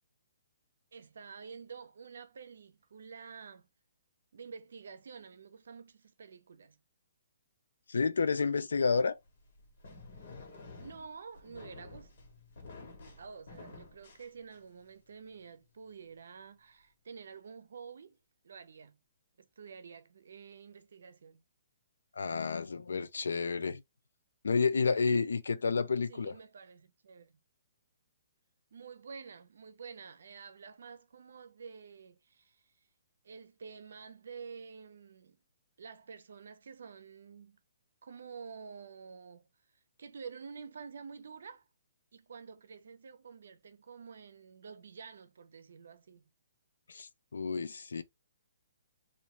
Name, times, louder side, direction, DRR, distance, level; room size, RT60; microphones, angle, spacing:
voice 1, 0.9-3.7 4.3-6.8 10.8-12.1 13.2-18.2 18.4-19.0 19.4-21.4 26.1-27.4 28.7-32.6 33.2-35.4 35.8-37.6 38.0-39.5 40.0-41.7 42.1-46.3, right 5 dB, 75° right, 0.7 m, -49 dB
voice 2, 7.9-9.2 22.2-23.8 24.4-26.3 46.9-48.0, left 5 dB, 90° left, 0.5 m, -30 dB
sound 1, 9.2-14.9, left 3 dB, 55° left, 1.5 m, -51 dB
3.2 x 2.7 x 3.0 m
hypercardioid pair, 160°, 0 cm